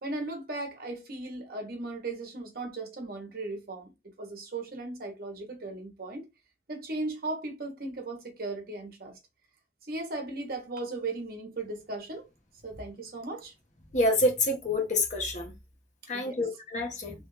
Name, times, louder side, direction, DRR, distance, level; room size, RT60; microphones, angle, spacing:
voice 1, 0.0-6.3 6.7-9.1 9.8-12.3 12.6-13.5 16.1-16.4, right 2 dB, 55° right, 0.9 m, -37 dB
voice 2, 13.9-15.5 16.1-17.1, left 1 dB, 45° left, 1.0 m, -27 dB
3.0 x 2.4 x 3.1 m
head